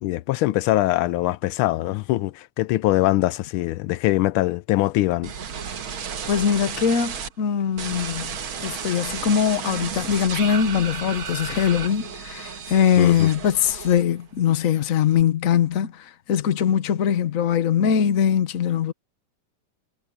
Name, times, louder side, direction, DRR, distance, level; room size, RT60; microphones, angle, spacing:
voice 1, 0.0-5.3 13.0-13.3, left 16 dB, 85° left, 1.5 m, -22 dB
sound 1, 5.2-7.3 7.8-14.3 14.6-15.2, right 7 dB, 75° right, 2.4 m, -33 dB
voice 2, 6.3-18.9, left 8 dB, 45° left, 1.2 m, -22 dB
omnidirectional pair, 2.3 m